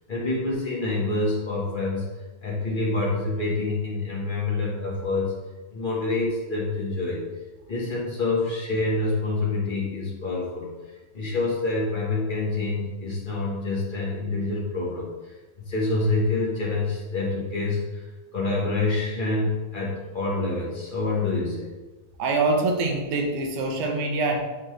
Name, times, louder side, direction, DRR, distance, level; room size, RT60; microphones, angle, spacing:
voice 1, 0.1-2.1 2.4-5.4 5.7-7.3 7.7-10.7 11.1-18.0 18.3-21.7, left 2 dB, 70° left, -5 dB, 0.4 m, -27 dB
voice 2, 22.2-24.4, right 3 dB, 90° right, 2 dB, 2.5 m, -24 dB
8.2 x 5.9 x 3.3 m, 1.2 s
omnidirectional pair, 3.4 m